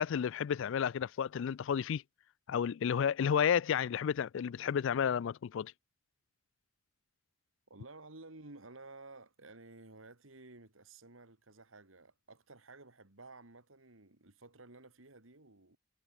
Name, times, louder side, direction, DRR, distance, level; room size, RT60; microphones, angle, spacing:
voice 1, 0.0-2.0 2.5-5.7, left 8 dB, 65° left, 0.4 m, -31 dB
voice 2, 7.7-15.8, right 2 dB, 85° right, 2.8 m, -54 dB
head